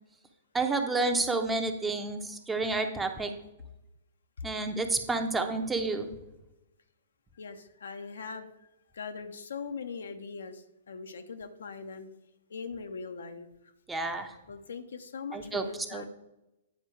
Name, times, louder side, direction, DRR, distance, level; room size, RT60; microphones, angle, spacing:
voice 1, 0.5-3.3 4.4-6.1 13.9-14.3 15.3-15.6 15.9-16.1, right 3 dB, 10° right, 5 dB, 0.8 m, -30 dB
voice 2, 7.3-8.5 8.9-12.1 12.5-13.5 14.5-16.1, left 5 dB, 65° left, 8 dB, 0.7 m, -41 dB
9.4 x 4.4 x 4.6 m, 0.93 s
figure-of-eight pair, 115°, 0 cm